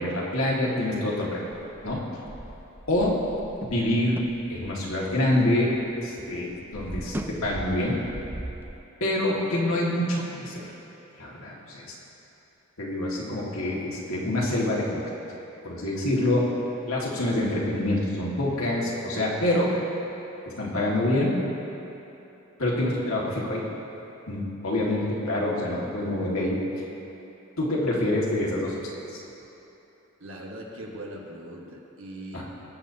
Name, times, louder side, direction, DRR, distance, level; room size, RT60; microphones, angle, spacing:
voice 1, 0.0-1.5 1.8-2.0 2.9-3.2 3.6-4.2 4.5-8.0 9.0-10.6 11.2-11.9 12.8-15.0 15.6-16.5 16.8-19.7 20.6-21.4 22.6-23.6 24.3-26.6 27.6-28.8 29.1-29.2 32.3-32.4, left 1 dB, 75° left, -4 dB, 2.0 m, -26 dB
sound 1, 1.5-5.9 6.2-8.7, right 1 dB, 10° right, 0.3 m, -39 dB
voice 2, 30.2-32.4, right 1 dB, 65° right, -1 dB, 1.4 m, -40 dB
20.5 x 7.8 x 2.9 m, 3.0 s
head